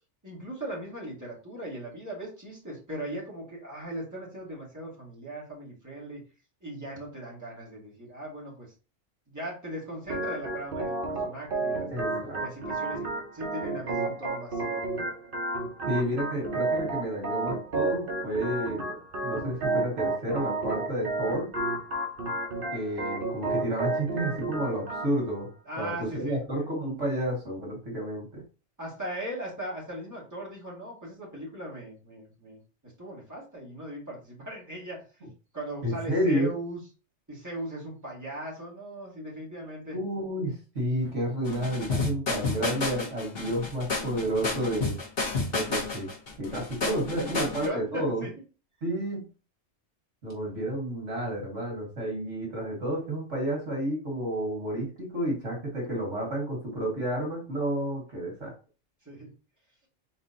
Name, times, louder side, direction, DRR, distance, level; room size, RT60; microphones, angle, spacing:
voice 1, 0.2-6.2 6.6-8.7 9.3-11.9 12.4-15.1 25.7-26.4 28.8-35.2 35.5-36.8 37.3-40.0 47.1-48.3 59.0-59.3, right 1 dB, 15° right, -5 dB, 2.3 m, -39 dB
Organ, 10.1-25.1, right 2 dB, 50° right, 1.0 m, -31 dB
voice 2, 11.9-12.4 15.9-21.5 22.7-25.5 25.8-28.4 35.8-36.5 39.9-45.0 45.5-46.1 46.4-48.2 48.8-49.2 50.2-58.5, right 1 dB, 80° right, -1 dB, 2.0 m, -31 dB
sound 1, 41.5-47.7, left 3 dB, 55° left, 1.3 m, -31 dB
4.3 x 4.0 x 2.7 m, 0.34 s
omnidirectional pair, 1.2 m